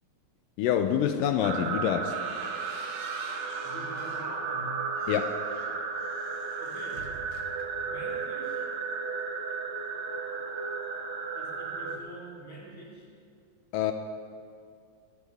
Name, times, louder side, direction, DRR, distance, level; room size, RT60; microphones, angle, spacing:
voice 1, 0.6-2.1 5.1-5.3 13.7-13.9, left 9 dB, 85° left, 7 dB, 2.3 m, -26 dB
sound 1, 1.4-12.0, right 5 dB, 65° right, 2.0 m, -34 dB
sound 2, 1.7-4.3 4.8-8.1, right 4 dB, 85° right, 3.1 m, -49 dB
voice 2, 3.6-4.9 6.6-7.2 7.8-8.7 11.3-13.1, equal, 20° left, -5 dB, 3.8 m, -45 dB
20.5 x 18.0 x 3.5 m, 2.3 s
omnidirectional pair, 3.9 m